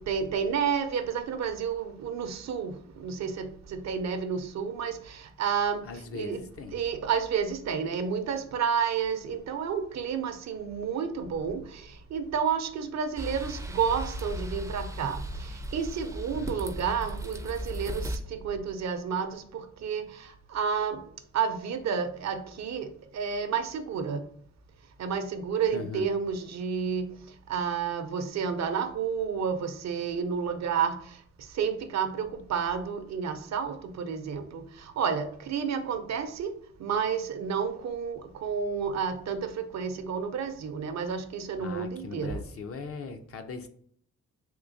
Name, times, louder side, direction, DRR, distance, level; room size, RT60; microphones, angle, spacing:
voice 1, 0.1-2.7 3.0-5.0 5.4-5.8 6.1-6.4 6.7-11.6 12.1-15.2 15.7-19.4 19.8-20.1 20.5-21.0 21.3-24.2 25.0-27.1 27.5-30.9 31.6-34.6 35.0-36.5 36.8-42.4, right 6 dB, 65° right, 8 dB, 0.5 m, -30 dB
voice 2, 5.8-6.8 16.3-16.6 25.7-26.1 41.6-43.7, left 4 dB, 50° left, 7 dB, 0.5 m, -39 dB
sound 1, 13.2-18.2, equal, 10° right, 0.4 m, -36 dB
3.6 x 2.7 x 2.6 m, 0.63 s
cardioid pair, 75°, 30 cm